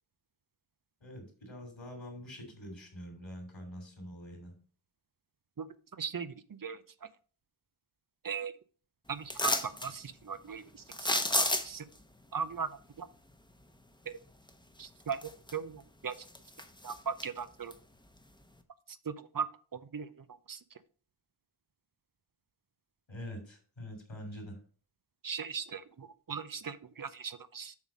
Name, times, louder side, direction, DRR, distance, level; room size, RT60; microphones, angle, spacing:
voice 1, 1.0-4.5 23.1-24.6, equal, 70° left, 3 dB, 3.0 m, -45 dB
voice 2, 6.0-6.8 8.2-8.5 9.1-9.5 9.8-11.3 11.6-11.9 12.3-12.7 13.0-13.1 14.1-14.2 14.8-15.2 15.5-16.1 16.8-17.7 19.1-19.5 19.7-20.1 20.5-20.6 25.2-27.8, right 6 dB, 45° right, 14 dB, 0.6 m, -38 dB
sound 1, 9.3-9.9 10.9-11.9 14.5-14.6 15.1-15.8 16.1-17.3 17.7-17.8, left 1 dB, 10° left, 0.9 m, -31 dB
7.2 x 4.1 x 6.2 m, 0.42 s
wide cardioid pair, 65°, 49 cm